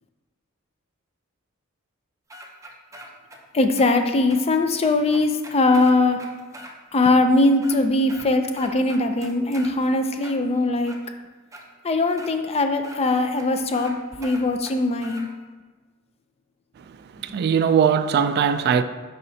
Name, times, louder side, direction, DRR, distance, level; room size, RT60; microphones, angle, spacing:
sound 1, 2.3-3.4 3.8-3.9 4.3-4.4 4.8-6.7 7.0-7.1 7.5-8.3 8.5-9.7 10.2-11.0 11.5-11.6 12.2-12.3 12.8-13.0 13.4-13.5 13.7-13.9 14.2-15.2, equal, 15° right, 0.6 m, -42 dB
voice 1, 3.5-6.2 6.9-11.0 11.8-15.3, left 2 dB, 30° left, 0.5 m, -21 dB
voice 2, 16.8-18.8, right 7 dB, 50° right, 0.3 m, -21 dB
10.5 x 4.2 x 2.7 m
head